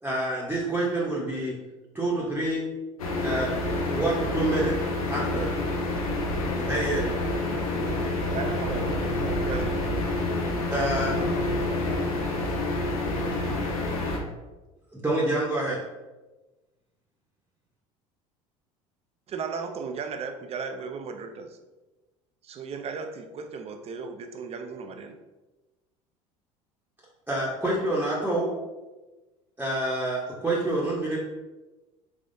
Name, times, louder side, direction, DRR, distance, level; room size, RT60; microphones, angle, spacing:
voice 1, 0.0-1.5 1.9-2.6 3.2-4.7 5.1-5.5 6.7-7.0 10.7-11.1 15.0-15.8 27.3-28.5 29.6-31.2, right 1 dB, 10° right, -6 dB, 0.9 m, -27 dB
sound 1, 3.0-14.2, left 2 dB, 90° left, 0.6 m, -28 dB
voice 2, 6.4-8.9 10.9-12.7 13.2-13.9, left 1 dB, 55° left, -1 dB, 0.8 m, -40 dB
voice 3, 8.3-9.8 19.3-21.6 22.4-25.2, right 5 dB, 35° right, 6 dB, 0.5 m, -35 dB
3.5 x 3.4 x 2.6 m, 1.1 s
hypercardioid pair, 70°, 18 cm